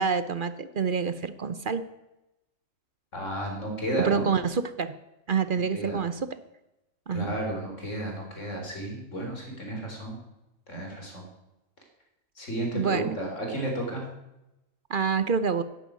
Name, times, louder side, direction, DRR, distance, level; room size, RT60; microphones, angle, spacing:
voice 1, 0.0-1.8 4.0-5.0 5.3-6.4 7.1-7.3 12.7-13.1 14.9-15.6, right 6 dB, 45° right, 13 dB, 0.8 m, -27 dB
voice 2, 3.1-4.2 5.7-6.0 7.1-10.2 10.7-11.3 12.4-14.0, right 1 dB, 65° left, 1 dB, 4.4 m, -32 dB
11.0 x 10.5 x 9.4 m, 0.95 s
omnidirectional pair, 1.4 m